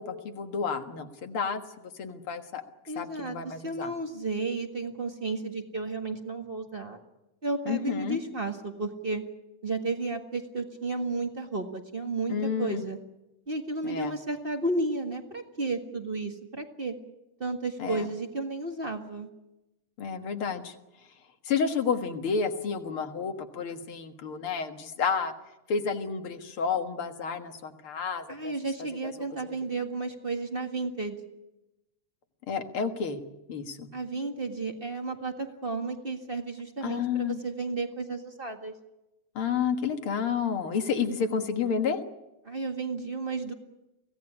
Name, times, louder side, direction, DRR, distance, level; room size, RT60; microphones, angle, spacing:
voice 1, 0.0-2.6 3.0-3.9 7.7-8.2 12.3-12.8 13.8-14.2 17.8-18.1 20.0-20.7 21.4-25.3 25.7-28.5 29.0-29.1 29.4-29.6 32.5-33.2 33.5-33.9 36.8-37.4 39.4-42.0, left 6 dB, 50° left, 7 dB, 2.1 m, -30 dB
voice 2, 2.9-7.0 7.4-9.2 9.6-13.0 13.5-16.9 17.4-19.3 28.3-31.2 33.9-38.7 42.4-43.5, right 3 dB, 25° right, 5 dB, 1.2 m, -33 dB
24.5 x 17.0 x 9.9 m, 0.98 s
omnidirectional pair, 3.4 m